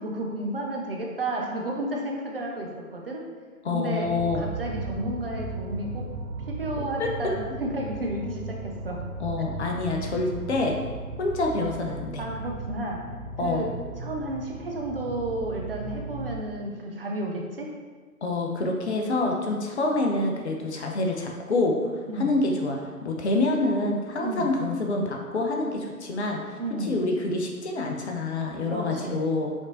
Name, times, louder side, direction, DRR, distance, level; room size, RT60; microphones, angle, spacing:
voice 1, 0.0-3.2 3.7-6.1 6.6-9.0 12.2-13.0 13.4-13.7 14.0-17.7 22.1-22.3 24.2-24.5 26.6-27.0 28.7-29.2, right 1 dB, 40° right, 0 dB, 0.5 m, -32 dB
voice 2, 3.6-4.4 7.0-7.1 9.2-10.7 11.2-12.2 13.4-13.6 18.2-21.8 22.2-29.5, left 2 dB, 50° left, 1 dB, 0.7 m, -27 dB
sound 1, 4.0-16.4, right 3 dB, 80° right, 0.8 m, -36 dB
5.1 x 3.0 x 2.5 m, 1.4 s
figure-of-eight pair, 125°, 45 cm